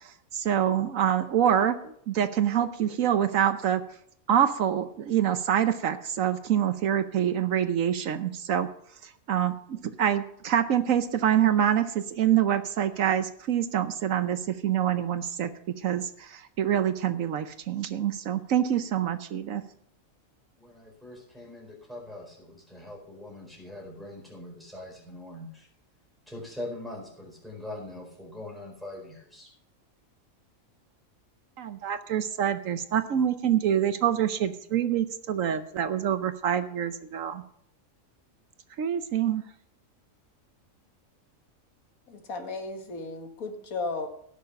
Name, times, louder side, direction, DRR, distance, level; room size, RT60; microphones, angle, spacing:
voice 1, 0.3-3.8 4.3-8.7 9.3-15.5 15.8-19.6 31.6-37.4 38.8-39.4, right 9 dB, 70° right, 11 dB, 1.1 m, -26 dB
voice 2, 20.6-25.7 26.3-29.5, left 1 dB, ahead, -3 dB, 4.4 m, -42 dB
voice 3, 42.1-44.1, left 3 dB, 80° left, 5 dB, 1.9 m, -35 dB
16.5 x 6.6 x 5.8 m, 0.68 s
omnidirectional pair, 1.5 m